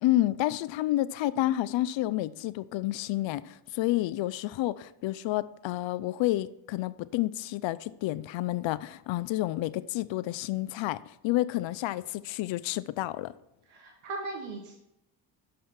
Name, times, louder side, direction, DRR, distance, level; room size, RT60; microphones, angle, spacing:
voice 1, 0.0-13.3, left 16 dB, 65° left, 0.5 m, -30 dB
voice 2, 13.7-14.8, right 3 dB, 80° right, 1.3 m, -38 dB
6.5 x 5.5 x 5.8 m
supercardioid pair, 70°, 49 cm